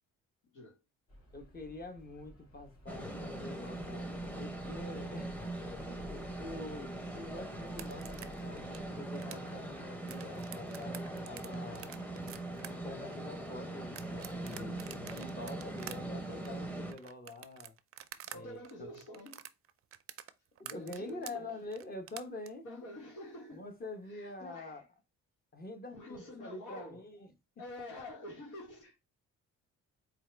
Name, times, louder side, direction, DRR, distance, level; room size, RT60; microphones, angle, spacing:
voice 1, 0.4-0.8 18.3-19.4 20.6-21.6 22.6-23.6 24.1-24.8 25.9-27.0 27.6-29.0, left 1 dB, 85° left, 1.5 m, -47 dB
sound 1, 1.1-9.1, equal, 55° left, 2.6 m, -54 dB
voice 2, 1.3-4.1 4.4-5.6 6.0-11.9 12.7-14.8 15.1-17.8 18.3-18.9 20.7-22.7 23.5-24.8 25.5-27.3, left 2 dB, 30° left, 1.0 m, -46 dB
sound 2, 2.9-16.9, right 1 dB, 5° left, 0.8 m, -41 dB
sound 3, 7.7-18.4 18.6-22.5, right 10 dB, 50° right, 0.4 m, -48 dB
4.5 x 2.5 x 3.3 m
cardioid pair, 90°, 30 cm